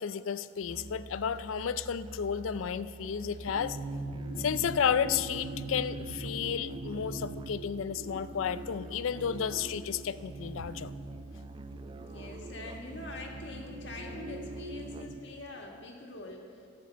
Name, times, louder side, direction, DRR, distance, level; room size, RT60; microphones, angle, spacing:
voice 1, 0.0-3.8 4.4-10.9, left 7 dB, 85° left, 15 dB, 0.4 m, -32 dB
Musical instrument, 0.6-15.3, right 3 dB, 25° right, 0.3 m, -46 dB
sound 1, 3.5-15.2, right 2 dB, 55° right, 0.8 m, -42 dB
voice 2, 12.0-16.7, left 2 dB, 60° left, 0 dB, 1.7 m, -44 dB
15.0 x 5.4 x 7.7 m, 2.4 s
head